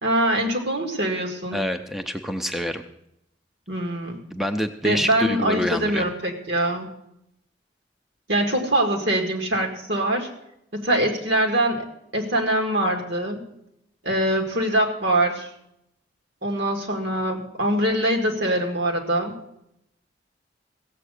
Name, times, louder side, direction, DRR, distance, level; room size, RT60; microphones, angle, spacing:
voice 1, 0.0-1.7 3.7-4.2 4.8-6.9 8.3-10.3 10.7-11.8 12.1-13.4 14.0-15.5 16.4-19.3, right 1 dB, 70° right, 2 dB, 2.1 m, -23 dB
voice 2, 1.5-2.8 4.3-6.1, equal, ahead, 7 dB, 0.5 m, -27 dB
16.0 x 7.7 x 6.4 m, 0.81 s
head